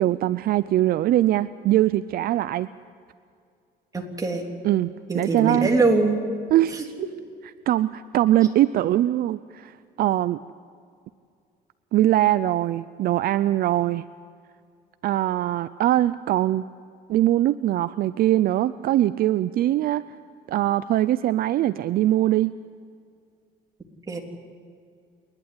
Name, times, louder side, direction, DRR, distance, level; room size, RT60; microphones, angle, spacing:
voice 1, 0.0-2.7 4.6-5.7 6.5-6.8 7.7-9.7 10.0-10.4 11.9-14.0 15.0-16.6 17.1-20.0 20.5-22.5, right 13 dB, 60° right, 14 dB, 0.5 m, -22 dB
voice 2, 3.9-4.4 5.1-6.2 6.7-6.8 24.1-24.2, right 3 dB, 20° right, 1 dB, 3.5 m, -22 dB
28.0 x 11.5 x 9.7 m, 2.3 s
cardioid pair, 110°, 17 cm